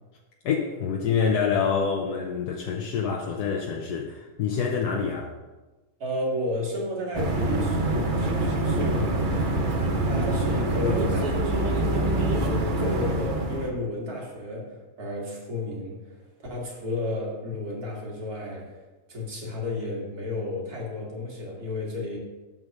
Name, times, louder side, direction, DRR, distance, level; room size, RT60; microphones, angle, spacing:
voice 1, 0.4-5.3, left 6 dB, 80° left, 1 dB, 1.3 m, -26 dB
voice 2, 6.0-16.0 16.5-18.7 19.1-22.2, left 2 dB, 70° right, -2 dB, 2.5 m, -32 dB
sound 1, 7.1-13.7, right 2 dB, 40° right, 0.8 m, -25 dB
7.4 x 6.5 x 5.1 m, 1.2 s
omnidirectional pair, 1.7 m